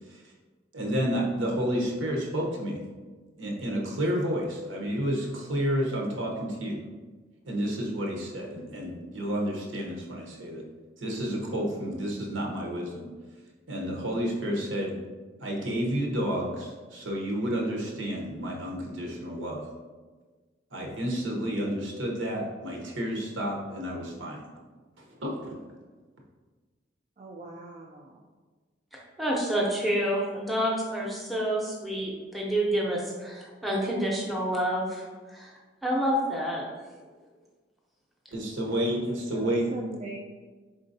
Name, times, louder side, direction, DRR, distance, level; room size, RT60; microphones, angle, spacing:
voice 1, 0.7-2.8 3.4-6.8 7.5-10.6 11.0-13.1 13.7-14.9 15.4-19.7 20.7-24.5 25.0-25.6 38.3-39.6, equal, 85° right, -1 dB, 0.9 m, -30 dB
voice 2, 27.2-28.3 39.3-40.2, right 2 dB, 35° right, -2 dB, 0.3 m, -40 dB
voice 3, 29.2-35.5 35.8-36.7, equal, ahead, -3 dB, 0.6 m, -28 dB
4.3 x 3.7 x 2.7 m, 1.4 s
head